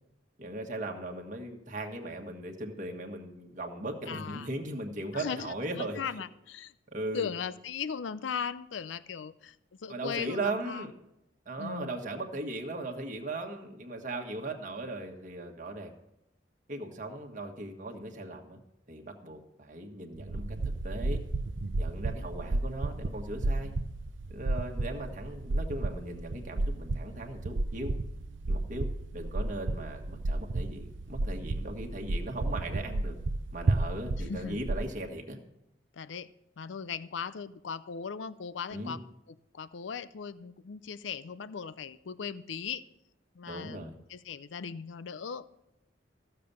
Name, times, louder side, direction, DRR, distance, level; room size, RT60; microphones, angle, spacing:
voice 1, 0.4-6.0 6.9-7.3 9.9-10.9 11.4-15.9 16.7-18.6 18.9-21.2 21.8-23.7 24.3-27.9 28.5-28.9 29.1-33.2 33.5-35.4 38.7-39.0 43.5-43.9, right 2 dB, 45° right, 2 dB, 1.5 m, -38 dB
voice 2, 4.1-4.5 5.1-6.7 7.1-9.6 9.8-10.9 11.6-11.9 34.2-34.6 35.9-36.3 36.6-39.0 39.3-42.8 43.4-45.4, left 6 dB, 75° left, 16 dB, 0.5 m, -38 dB
sound 1, 20.1-34.8, right 2 dB, 80° right, 0.6 m, -33 dB
15.0 x 6.8 x 6.8 m, 0.83 s
head